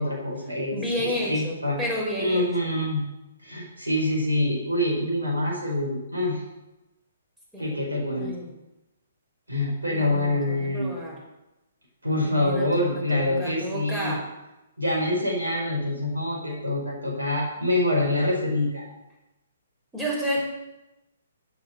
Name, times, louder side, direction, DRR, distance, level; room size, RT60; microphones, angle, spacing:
voice 1, 0.0-0.8 1.3-1.8 2.2-3.0 3.4-6.4 7.6-8.3 9.5-10.9 12.0-14.2 14.8-18.9, left 1 dB, 80° right, -2 dB, 4.9 m, -25 dB
voice 2, 0.7-2.5 7.5-7.9 8.2-8.5 9.9-11.2 12.2-14.2 19.9-20.4, equal, 10° right, -4 dB, 4.6 m, -31 dB
8.1 x 7.6 x 7.7 m, 0.99 s
figure-of-eight pair, 125°, 0 cm